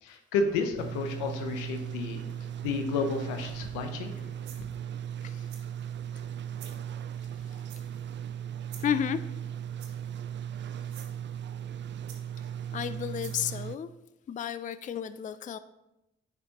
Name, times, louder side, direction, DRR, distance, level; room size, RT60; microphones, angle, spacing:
voice 1, 0.0-2.2 2.6-4.2, left 4 dB, 85° left, 6 dB, 0.8 m, -31 dB
sound 1, 0.8-13.8, right 9 dB, 40° right, 0.4 m, -37 dB
sound 2, 3.9-4.1 4.4-4.8 5.5-5.9 6.5-6.8 7.7-8.1 8.7-9.0 9.8-10.2 10.8-11.1 12.1-12.5 13.2-13.4, right 8 dB, 80° right, 0.9 m, -50 dB
voice 2, 8.8-9.2 12.7-13.9 14.3-15.6, left 9 dB, 25° left, 13 dB, 0.4 m, -33 dB
9.8 x 4.5 x 2.9 m, 0.94 s
hypercardioid pair, 45°, 29 cm